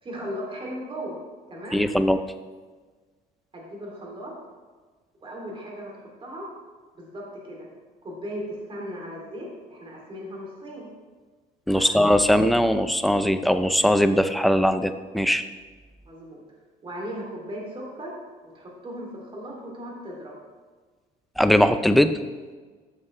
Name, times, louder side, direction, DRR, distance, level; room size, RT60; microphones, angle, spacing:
voice 1, 0.0-1.2 1.5-1.8 3.5-4.3 5.2-6.5 6.9-7.7 8.0-10.9 11.7-12.2 16.1-16.4 16.8-18.1 18.4-20.4, equal, 30° right, -2 dB, 2.9 m, -37 dB
voice 2, 1.7-2.2 11.7-15.4 21.4-22.1, equal, ahead, 9 dB, 0.5 m, -20 dB
13.0 x 7.1 x 3.3 m, 1.4 s
cardioid pair, 110°, 17 cm